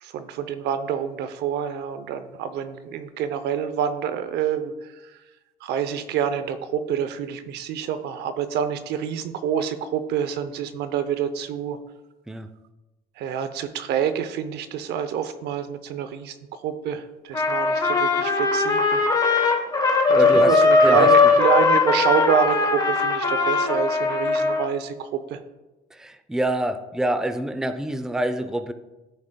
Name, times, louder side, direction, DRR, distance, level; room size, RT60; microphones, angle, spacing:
voice 1, 0.0-4.7 5.6-11.8 13.2-16.3 16.6-19.0 20.1-25.4, right 8 dB, 80° right, 11 dB, 0.6 m, -27 dB
Trumpet, 17.3-24.7, left 3 dB, 20° left, 1.1 m, -19 dB
voice 2, 20.1-21.1 25.9-28.7, right 1 dB, 5° right, 10 dB, 0.4 m, -26 dB
13.5 x 4.9 x 2.2 m, 1.1 s
cardioid pair, 110°, 17 cm